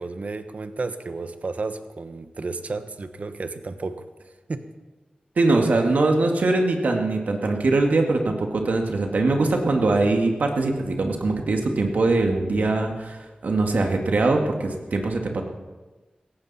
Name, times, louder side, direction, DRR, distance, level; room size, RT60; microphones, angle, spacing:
voice 1, 0.0-4.0 4.5-4.6, right 3 dB, 60° right, 9 dB, 1.1 m, -32 dB
voice 2, 5.4-15.4, right 2 dB, 80° right, 3 dB, 2.0 m, -22 dB
18.0 x 15.5 x 4.3 m, 1.2 s
wide cardioid pair, 65°, 3 cm